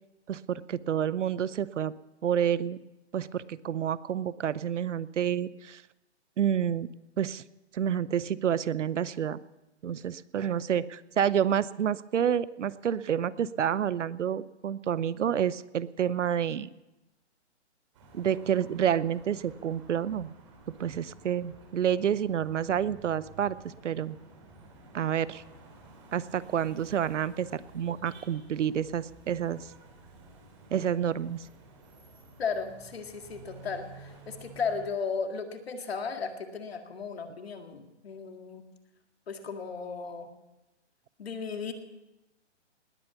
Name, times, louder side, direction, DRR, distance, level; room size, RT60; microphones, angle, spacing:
voice 1, 0.3-1.9 2.2-2.8 3.1-5.8 6.4-6.9 7.2-7.4 7.7-9.4 9.8-16.7 18.1-20.3 20.8-24.2 24.9-25.4 26.1-29.7 30.7-31.5, right 9 dB, 85° right, 18 dB, 0.8 m, -29 dB
sound 1, 17.9-34.9, right 2 dB, 25° right, 2.8 m, -53 dB
voice 2, 32.4-38.6 39.3-40.3 41.2-41.7, left 5 dB, 60° left, 5 dB, 2.0 m, -35 dB
19.5 x 8.8 x 7.0 m, 1.0 s
hypercardioid pair, 175°, 35 cm